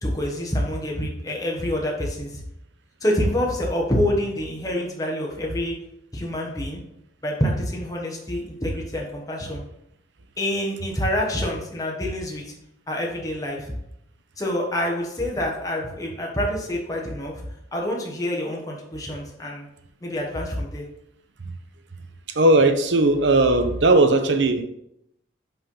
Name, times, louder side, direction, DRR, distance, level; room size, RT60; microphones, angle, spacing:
voice 1, 0.0-2.4 3.0-5.7 6.1-6.8 7.2-9.6 10.4-12.5 12.9-13.7 14.4-17.5 17.7-19.7 20.0-20.8, left 1 dB, 20° left, -2 dB, 1.2 m, -27 dB
voice 2, 22.4-24.6, right 2 dB, 65° right, 8 dB, 0.7 m, -17 dB
5.6 x 4.3 x 5.4 m, 0.79 s
head